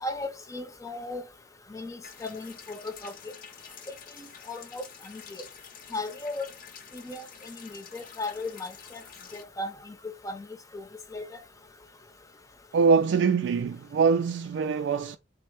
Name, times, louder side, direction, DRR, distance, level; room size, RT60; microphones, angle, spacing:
voice 1, 0.0-1.2 1.7-3.1 4.2-5.4 5.9-6.5 6.9-9.0 9.3-10.5 10.7-10.8 11.1-11.4, left 2 dB, 20° left, 0.6 m, -37 dB
sound 1, 2.0-9.4, left 7 dB, 55° left, 0.7 m, -48 dB
voice 2, 12.7-15.2, right 5 dB, 85° right, 0.3 m, -23 dB
4.3 x 2.1 x 4.5 m
head